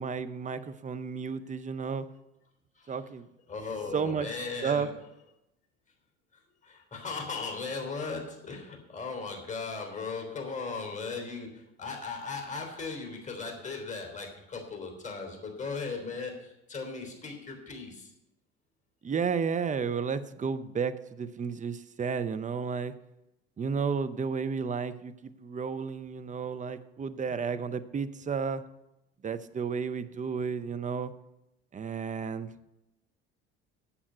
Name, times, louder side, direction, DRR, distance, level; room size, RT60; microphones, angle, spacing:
voice 1, 0.0-2.1 2.9-3.3 3.9-4.3 4.6-4.9 19.0-22.9 23.6-28.6 29.2-31.1 31.7-32.5, right 6 dB, 25° right, 11 dB, 0.7 m, -32 dB
voice 2, 3.5-4.9 6.6-18.1, left 4 dB, 25° left, 3 dB, 3.4 m, -37 dB
8.6 x 7.2 x 8.2 m, 0.90 s
hypercardioid pair, 65°, 32 cm